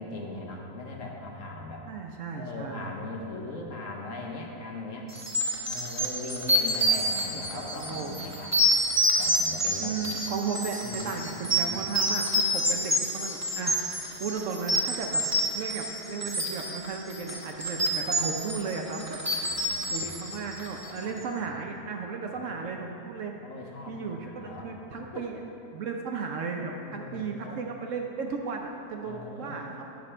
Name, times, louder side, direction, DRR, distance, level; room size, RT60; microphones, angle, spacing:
voice 1, 0.0-1.8 2.4-5.1 5.7-8.5 9.2-9.9 10.8-12.1 19.3-20.0 21.1-21.2 22.4-22.7 23.4-24.7 25.1-25.2 26.8-27.6 29.0-29.7, left 2 dB, 60° left, 0 dB, 1.2 m, -40 dB
voice 2, 1.9-2.9 7.3-8.2 9.8-15.2 15.5-19.2 19.9-23.4 23.9-25.4 25.7-29.9, right 5 dB, 65° right, 2 dB, 0.9 m, -35 dB
sound 1, 5.1-21.0, equal, 15° right, 0.7 m, -28 dB
8.7 x 6.7 x 4.3 m, 2.8 s
omnidirectional pair, 1.6 m